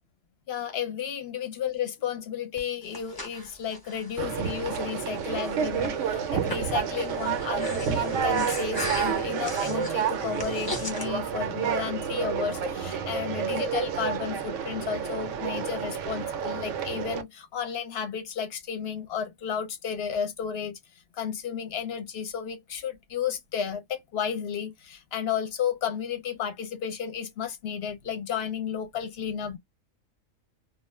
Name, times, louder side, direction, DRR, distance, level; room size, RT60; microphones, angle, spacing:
voice 1, 0.5-20.7 21.1-29.6, left 8 dB, 55° left, 0.8 m, -33 dB
Breathing, 2.6-11.1, left 1 dB, 20° left, 0.7 m, -39 dB
Conversation, 4.2-17.2, right 7 dB, 70° right, 0.9 m, -29 dB
2.4 x 2.1 x 3.1 m
omnidirectional pair, 1.4 m